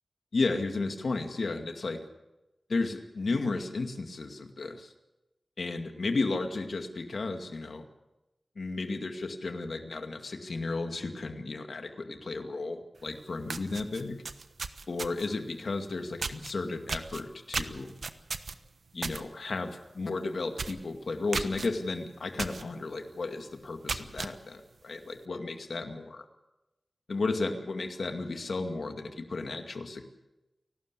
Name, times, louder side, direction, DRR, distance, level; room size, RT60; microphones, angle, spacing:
voice 1, 0.3-2.0 2.7-4.9 5.6-7.9 8.6-14.2 14.9-17.9 18.9-26.3 27.1-30.0, left 3 dB, 75° left, 6 dB, 2.2 m, -33 dB
sound 1, 13.0-13.1 13.4-15.4 16.2-16.5 16.9-19.2 19.6-19.8 20.1-20.2 20.5-20.8 21.3-21.7 22.4-22.6 23.1-23.2 23.7-24.3, right 4 dB, 80° right, 1.1 m, -35 dB
29.5 x 12.5 x 8.3 m, 1.0 s
wide cardioid pair, 65°, 0 cm